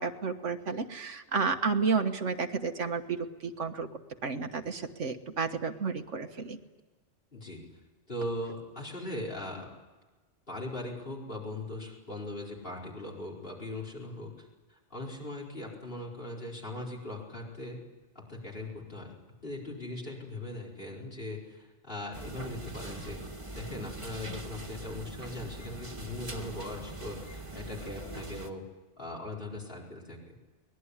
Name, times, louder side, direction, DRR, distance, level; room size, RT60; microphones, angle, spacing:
voice 1, 0.0-3.9 4.2-6.6, right 5 dB, 75° right, 7 dB, 1.7 m, -31 dB
voice 2, 7.3-7.6 8.1-9.7 10.5-17.8 18.1-19.1 19.4-23.2 23.5-28.6 29.0-30.3, left 1 dB, 50° left, -2 dB, 4.9 m, -40 dB
sound 1, 22.1-28.5, right 2 dB, 25° right, 1.9 m, -42 dB
23.0 x 19.5 x 9.8 m, 1.2 s
omnidirectional pair, 1.3 m